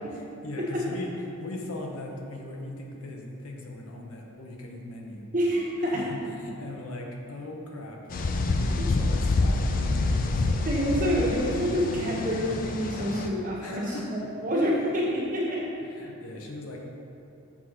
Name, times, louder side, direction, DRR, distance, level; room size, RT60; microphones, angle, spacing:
voice 1, 0.1-1.1 1.4-5.3 5.9-10.6 13.6-14.1 15.8-16.8, left 1 dB, 80° left, 0 dB, 1.0 m, -39 dB
voice 2, 5.3-6.0 8.8-8.9 10.6-13.8 14.4-15.6, equal, 35° right, -7 dB, 1.7 m, -27 dB
sound 1, 8.1-13.3, left 2 dB, 40° left, 0.4 m, -27 dB
7.3 x 5.9 x 4.3 m, 2.7 s
head